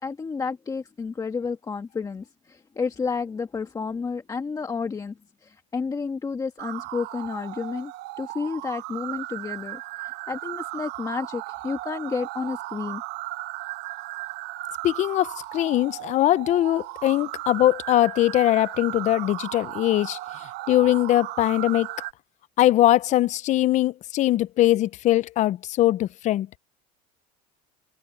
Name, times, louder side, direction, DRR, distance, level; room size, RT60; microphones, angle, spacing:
voice 1, 0.0-5.2 5.4-7.9 8.2-13.0, left 5 dB, 15° left, 1.4 m, -31 dB
sound 1, 6.6-22.1, right 18 dB, 55° right, 1.0 m, -36 dB
voice 2, 14.8-20.2 20.7-21.9 22.6-26.5, left 14 dB, 35° left, 0.6 m, -21 dB
cardioid pair, 140°, 20 cm